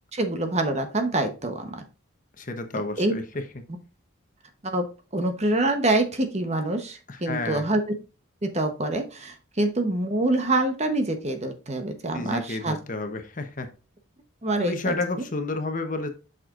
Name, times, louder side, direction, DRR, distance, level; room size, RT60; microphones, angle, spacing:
voice 1, 0.1-1.8 3.0-3.2 3.7-3.8 4.6-7.8 8.4-12.8 14.4-15.0, right 2 dB, 30° right, 6 dB, 1.0 m, -26 dB
voice 2, 2.4-3.2 7.1-7.7 12.1-13.7 14.6-16.1, left 3 dB, 40° left, 7 dB, 0.9 m, -30 dB
7.5 x 6.0 x 2.5 m, 0.33 s
head